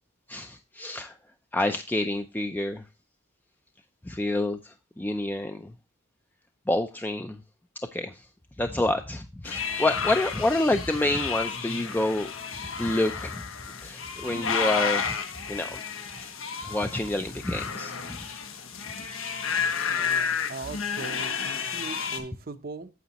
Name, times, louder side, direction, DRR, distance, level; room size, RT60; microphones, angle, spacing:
voice 1, 0.3-1.2 1.5-2.8 4.0-5.7 6.7-7.4 7.9-8.2 8.6-12.3 12.8-13.4 13.8-15.1 15.5-15.8 16.2-16.3 16.6-18.4, left 2 dB, 10° left, 6 dB, 0.4 m, -28 dB
sound 1, 9.4-22.2, left 6 dB, 90° left, 1.3 m, -31 dB
voice 2, 19.9-22.9, right 3 dB, 50° right, 11 dB, 0.6 m, -40 dB
9.3 x 7.2 x 2.9 m, 0.29 s
head